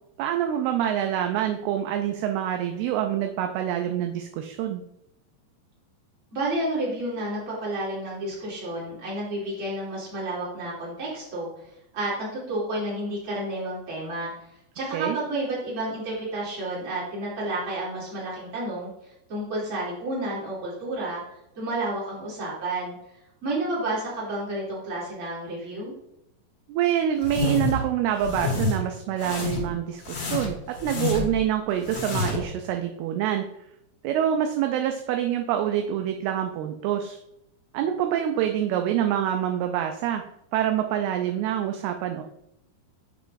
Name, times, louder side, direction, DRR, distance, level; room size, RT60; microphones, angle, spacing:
voice 1, 0.2-4.8 14.9-15.2 26.7-33.5 34.0-37.2 37.7-40.2 40.5-42.2, right 10 dB, 85° right, 4 dB, 2.3 m, -26 dB
voice 2, 6.3-11.5 11.9-14.3 14.7-18.9 19.3-21.2 21.5-22.9 23.4-25.9, right 1 dB, 35° right, -6 dB, 3.0 m, -30 dB
sound 1, 27.2-27.8 28.2-28.8 29.2-29.7 30.0-31.4 31.8-32.5, left 4 dB, 55° left, 1.7 m, -28 dB
8.3 x 6.1 x 2.5 m, 0.81 s
omnidirectional pair, 4.9 m